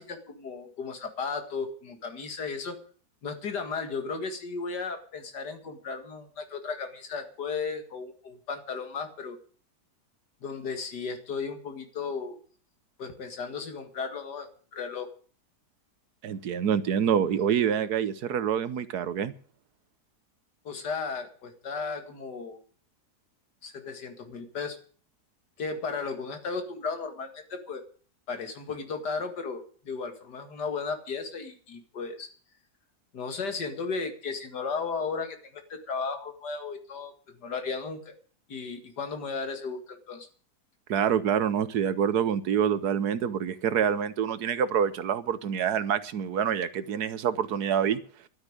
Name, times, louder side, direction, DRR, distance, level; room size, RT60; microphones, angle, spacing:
voice 1, 0.0-2.8 3.2-9.4 10.4-12.4 13.0-15.1 17.7-17.8 20.6-22.6 23.6-24.8 25.6-27.8 28.3-32.3 33.1-38.1 38.5-40.3, left 4 dB, 85° left, 7 dB, 2.5 m, -35 dB
voice 2, 16.2-19.3 40.9-48.0, right 8 dB, 75° right, 14 dB, 1.5 m, -26 dB
12.0 x 10.0 x 8.7 m, 0.43 s
omnidirectional pair, 1.7 m